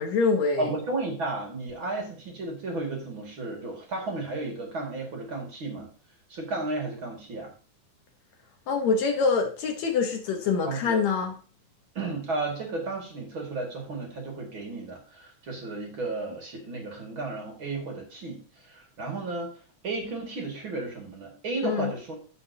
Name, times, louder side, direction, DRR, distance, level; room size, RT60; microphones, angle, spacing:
voice 1, 0.0-0.7 8.7-11.3 21.6-21.9, left 5 dB, 65° left, 4 dB, 2.1 m, -25 dB
voice 2, 0.6-5.9 6.3-7.5 10.6-11.0 11.9-19.5 19.8-22.1, right 3 dB, 45° right, 1 dB, 2.5 m, -33 dB
16.0 x 5.6 x 2.8 m, 0.39 s
omnidirectional pair, 3.6 m